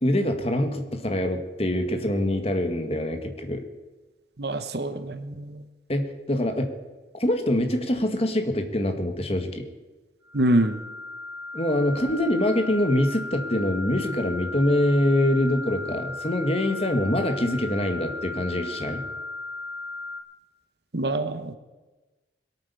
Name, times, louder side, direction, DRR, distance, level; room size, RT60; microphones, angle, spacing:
voice 1, 0.0-3.6 5.9-6.7 7.1-9.7 11.5-19.0, left 1 dB, 35° left, 5 dB, 1.9 m, -24 dB
voice 2, 4.4-5.6 10.3-10.8 20.9-21.5, right 1 dB, 65° right, 10 dB, 1.2 m, -25 dB
sound 1, 10.2-20.2, left 2 dB, 15° right, 2.4 m, -36 dB
22.5 x 8.9 x 7.1 m, 1.2 s
head